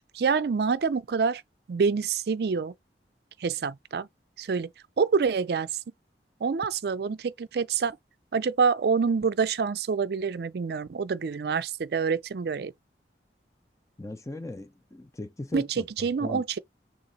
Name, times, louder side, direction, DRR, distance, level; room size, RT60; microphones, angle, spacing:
voice 1, 0.1-1.4 1.7-2.7 3.4-4.1 4.4-4.7 5.0-5.8 6.4-8.0 8.3-12.7 15.5-16.6, right 5 dB, 60° right, 0.4 m, -26 dB
voice 2, 14.0-15.9 16.2-16.4, left 2 dB, 20° left, 0.6 m, -37 dB
6.8 x 2.6 x 2.9 m
head